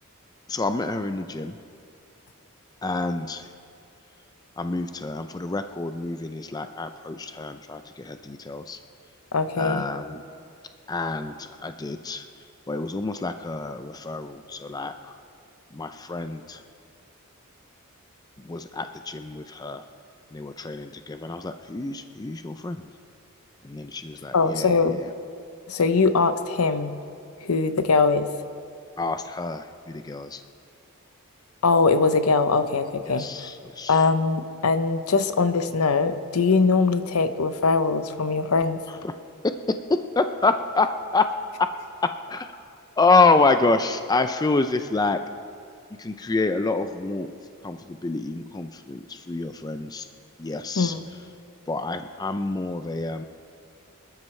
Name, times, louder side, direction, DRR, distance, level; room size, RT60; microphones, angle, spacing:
voice 1, 0.5-1.6 2.8-3.5 4.6-8.8 9.6-10.2 10.9-12.3 12.7-15.1 15.7-16.6 18.4-19.8 20.3-22.9 23.6-25.1 29.0-30.4 33.1-34.0 38.9-39.1 40.2-40.9 41.1-41.3 41.6-41.7 42.3-42.7 43.0-45.2 46.0-47.3 47.6-50.1 50.4-50.9 51.7-53.2, left 3 dB, 20° left, 8 dB, 0.4 m, -27 dB
voice 2, 9.3-9.8 24.3-25.0 25.7-26.9 27.4-28.3 31.6-33.3 33.9-38.8 50.8-51.0, left 4 dB, 80° left, 10 dB, 0.8 m, -21 dB
25.0 x 13.0 x 3.3 m, 2.3 s
head